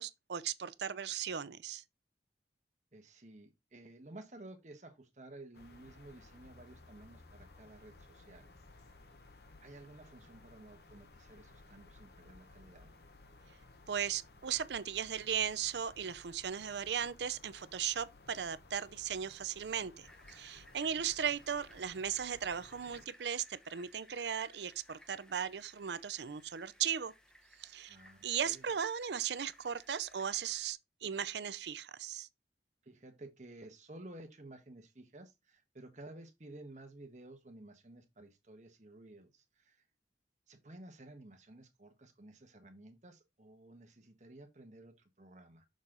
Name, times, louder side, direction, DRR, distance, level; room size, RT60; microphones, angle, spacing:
voice 1, 0.0-1.8 13.9-27.1 27.6-28.0 28.2-32.3, right 8 dB, 80° right, 0.5 m, -37 dB
voice 2, 2.9-8.9 9.6-12.9 27.9-28.7 32.8-39.8 40.5-45.7, right 2 dB, 40° right, 1.2 m, -54 dB
sound 1, 5.5-23.1, left 2 dB, 65° left, 0.8 m, -58 dB
sound 2, 20.0-30.7, left 1 dB, 5° left, 0.8 m, -62 dB
6.3 x 4.1 x 3.8 m
head